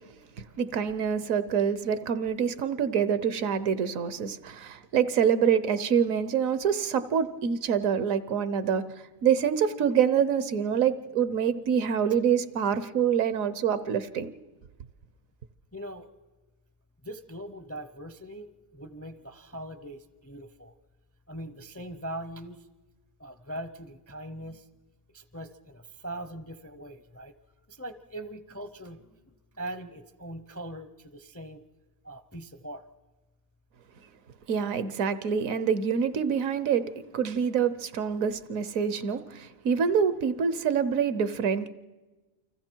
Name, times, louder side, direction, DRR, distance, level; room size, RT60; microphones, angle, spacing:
voice 1, 0.3-8.8 9.2-14.4 34.5-36.9 37.1-41.7, right 7 dB, 75° right, 13 dB, 1.3 m, -26 dB
voice 2, 15.7-16.1 17.0-20.7 21.3-22.6 23.2-24.7 25.1-27.3 27.7-31.6 32.0-32.8, right 1 dB, 20° left, 11 dB, 0.4 m, -41 dB
29.0 x 25.0 x 4.5 m, 1.2 s
omnidirectional pair, 1.4 m